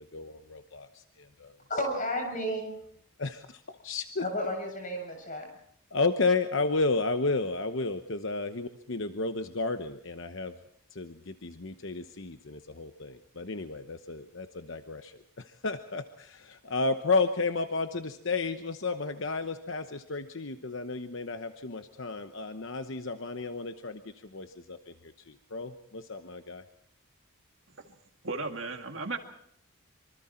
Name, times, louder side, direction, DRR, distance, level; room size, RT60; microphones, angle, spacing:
voice 1, 0.0-1.6 3.2-4.2 5.9-10.6 10.9-26.6, left 3 dB, 55° left, 8 dB, 1.0 m, -32 dB
voice 2, 1.7-2.7 4.2-5.5, equal, 35° left, 3 dB, 7.4 m, -32 dB
voice 3, 28.2-29.2, right 3 dB, 60° right, 5 dB, 2.1 m, -35 dB
25.5 x 24.5 x 4.4 m, 0.68 s
head